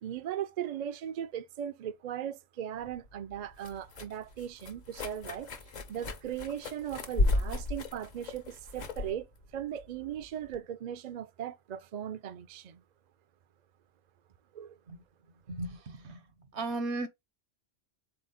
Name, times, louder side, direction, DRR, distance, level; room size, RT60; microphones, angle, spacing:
voice 1, 0.0-5.5 5.9-9.3 9.5-12.8 14.5-14.8, right 10 dB, 55° right, 0.5 m, -38 dB
sound 1, 2.8-10.6, left 2 dB, 45° left, 0.8 m, -35 dB
voice 2, 15.5-16.2 16.5-17.1, right 2 dB, 80° right, 1.1 m, -35 dB
4.0 x 3.0 x 4.0 m
omnidirectional pair, 1.1 m